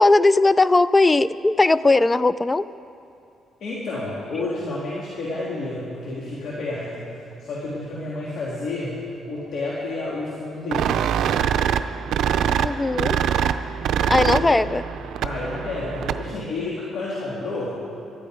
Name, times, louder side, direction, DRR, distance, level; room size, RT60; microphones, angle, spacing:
voice 1, 0.0-2.6 12.6-13.2 14.1-14.8, left 2 dB, 20° left, 16 dB, 0.3 m, -18 dB
voice 2, 3.6-7.1 7.4-9.0 9.3-11.0 14.2-14.5 15.2-17.7, left 2 dB, 60° left, -6 dB, 2.8 m, -30 dB
sound 1, 10.7-16.4, right 9 dB, 75° right, 0.5 m, -24 dB
19.0 x 12.5 x 5.1 m, 2.6 s
cardioid pair, 90°, 0 cm